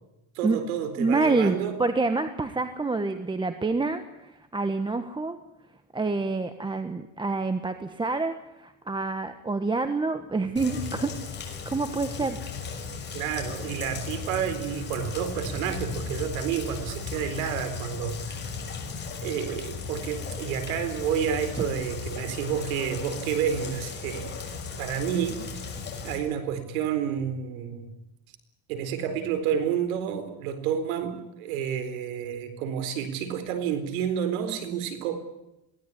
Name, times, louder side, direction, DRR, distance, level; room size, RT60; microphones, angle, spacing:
voice 1, 0.3-1.7 13.1-18.6 19.2-24.3 24.8-25.4 26.0-27.9 28.7-35.2, right 8 dB, 90° right, 9 dB, 4.3 m, -30 dB
voice 2, 1.0-5.4 5.9-11.1 11.6-12.4, right 3 dB, 10° right, 9 dB, 1.3 m, -27 dB
Rain, 10.6-26.2, left 5 dB, 25° left, 6.1 m, -36 dB
22.5 x 17.0 x 10.0 m, 0.89 s
cardioid pair, 135°, 41 cm